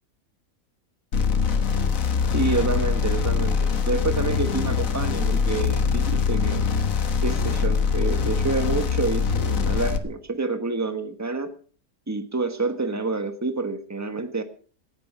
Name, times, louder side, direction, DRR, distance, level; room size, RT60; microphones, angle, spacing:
sound 1, 1.1-10.0, left 6 dB, 65° left, 1.7 m, -23 dB
voice 1, 2.3-6.6 7.2-11.5 12.1-14.4, right 3 dB, 10° right, 8 dB, 1.4 m, -28 dB
17.5 x 10.5 x 6.1 m, 0.42 s
omnidirectional pair, 1.5 m